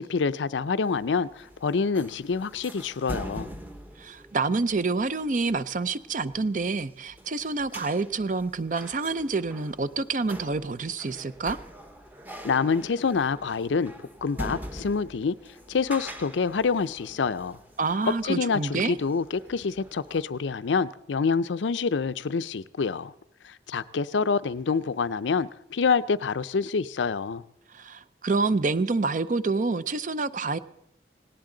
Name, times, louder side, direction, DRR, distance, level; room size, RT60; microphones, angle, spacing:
voice 1, 0.0-3.5 12.4-13.9 14.2-15.4 15.7-17.6 18.0-23.1 23.4-27.4, left 5 dB, 85° left, 0.5 m, -27 dB
sound 1, 0.8-20.2, equal, 10° right, 0.9 m, -44 dB
voice 2, 4.0-11.6 17.8-19.0 27.7-30.6, right 3 dB, 45° right, 0.5 m, -27 dB
18.0 x 18.0 x 3.9 m
head